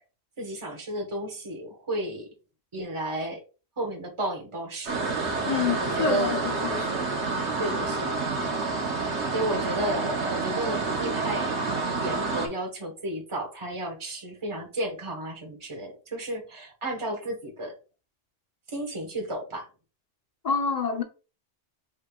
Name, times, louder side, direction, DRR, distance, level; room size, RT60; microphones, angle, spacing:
voice 1, 0.4-2.3 2.7-3.4 3.8-5.0 5.8-6.5 7.6-8.2 9.3-11.6 12.0-17.7 18.7-19.7, right 1 dB, 25° right, 1.3 m, -33 dB
sound 1, 4.9-12.5, right 3 dB, 75° right, 1.3 m, -28 dB
voice 2, 5.5-6.4 6.6-7.1 20.4-21.0, left 5 dB, 40° left, 0.8 m, -27 dB
5.3 x 3.6 x 2.3 m
omnidirectional pair, 1.2 m